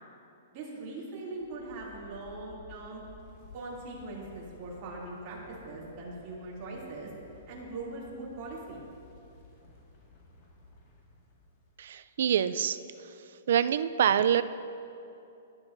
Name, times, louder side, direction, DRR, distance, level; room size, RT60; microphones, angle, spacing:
voice 1, 0.5-3.0 3.5-7.1 7.5-8.8, right 2 dB, 30° right, -6 dB, 2.7 m, -41 dB
sound 1, 1.3-12.1, left 3 dB, 30° left, 1.8 m, -55 dB
voice 2, 11.8-12.8 13.5-14.4, right 9 dB, 60° right, 14 dB, 0.4 m, -25 dB
18.0 x 9.8 x 2.6 m, 2.7 s
hypercardioid pair, 170°, 0 cm